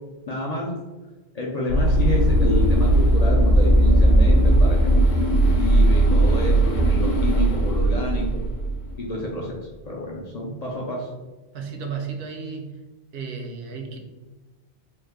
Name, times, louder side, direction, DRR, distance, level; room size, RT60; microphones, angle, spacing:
voice 1, 0.3-0.7 1.3-5.0 5.4-8.2 9.0-9.6 9.8-11.1, left 1 dB, 50° left, -2 dB, 0.5 m, -29 dB
sound 1, 1.7-9.1, right 1 dB, 85° left, 0.9 m, -18 dB
voice 2, 11.5-12.8 13.1-14.0, right 5 dB, 75° right, 3 dB, 0.8 m, -33 dB
3.2 x 2.2 x 3.4 m, 1.2 s
omnidirectional pair, 1.1 m